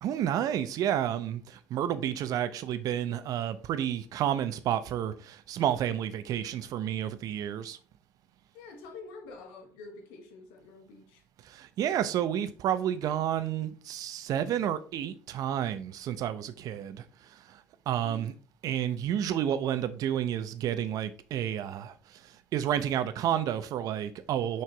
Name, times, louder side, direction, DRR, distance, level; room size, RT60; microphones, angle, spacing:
voice 1, 0.0-7.8 11.4-18.3 18.6-24.6, right 10 dB, 65° right, 0.8 m, -31 dB
voice 2, 8.5-11.2 18.0-18.2, left 4 dB, 80° left, 1.6 m, -47 dB
6.3 x 5.8 x 3.4 m
hypercardioid pair, 60°, 7 cm